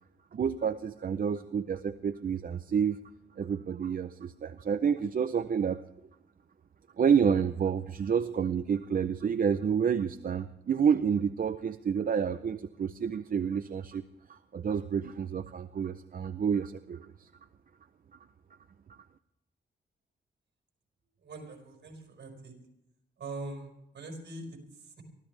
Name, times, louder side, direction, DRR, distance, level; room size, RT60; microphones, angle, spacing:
voice 1, 0.3-3.0 3.4-5.8 7.0-14.0 14.3-17.3, right 7 dB, 50° right, 9 dB, 0.6 m, -29 dB
voice 2, 21.2-22.5 23.2-25.0, right 2 dB, 65° right, 3 dB, 5.0 m, -43 dB
23.5 x 16.0 x 3.4 m, 0.86 s
wide cardioid pair, 130°, 19 cm